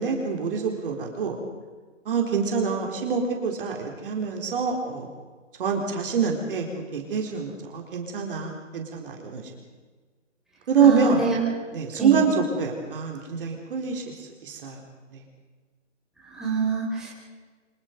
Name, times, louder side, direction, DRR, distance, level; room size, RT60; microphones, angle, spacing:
voice 1, 0.0-1.4 2.1-5.1 5.6-6.7 6.9-9.5 10.7-11.2 11.7-14.8 15.1-15.2, right 5 dB, 45° right, 1 dB, 4.3 m, -25 dB
voice 2, 10.8-11.4 12.0-12.2 16.3-17.1, right 5 dB, ahead, -6 dB, 5.3 m, -26 dB
26.5 x 23.0 x 5.4 m, 1.4 s
hypercardioid pair, 155°, 38 cm